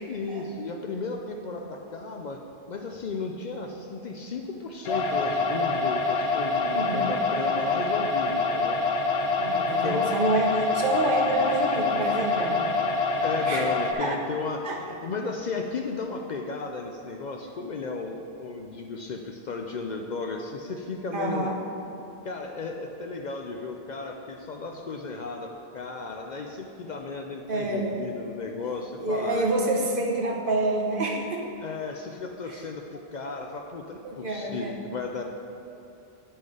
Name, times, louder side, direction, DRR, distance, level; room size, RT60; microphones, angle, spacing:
voice 1, 0.1-2.4 2.7-8.8 9.6-10.1 13.2-21.5 22.2-29.5 31.6-35.2, left 4 dB, 55° left, 2 dB, 0.6 m, -34 dB
sound 1, 4.8-13.9, left 3 dB, 80° left, 0.9 m, -26 dB
voice 2, 6.6-7.2 9.2-12.7 13.4-13.7 14.0-14.1 14.6-14.8 21.1-21.6 27.5-28.1 29.0-31.5 32.5-32.6 34.0-34.9, right 2 dB, 60° right, -1 dB, 1.1 m, -28 dB
10.0 x 4.4 x 4.8 m, 2.8 s
omnidirectional pair, 1.0 m